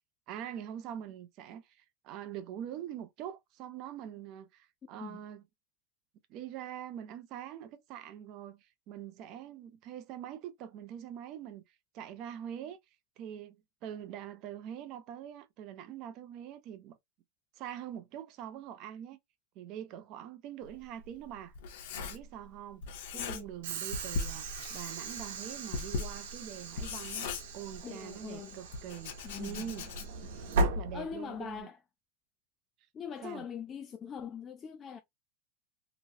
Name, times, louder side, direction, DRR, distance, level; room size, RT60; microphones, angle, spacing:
voice 1, 0.3-5.4 6.3-12.8 13.2-17.0 17.5-19.2 19.6-21.5 22.0-29.9 30.5-31.7 33.2-33.4, right 10 dB, 35° right, 0.5 m, -44 dB
Writing, 20.7-22.5 22.8-23.7 23.9-28.1 28.7-30.3, left 4 dB, 60° left, 0.9 m, -39 dB
voice 2, 23.1-23.5 27.8-28.6 29.2-29.8 30.2-30.5 30.9-31.8 32.9-35.0, left 7 dB, 20° left, 0.3 m, -42 dB
Train / Sliding door, 23.6-31.6, right 2 dB, 70° right, 0.9 m, -37 dB
2.9 x 2.8 x 2.7 m
supercardioid pair, 170°, 0 cm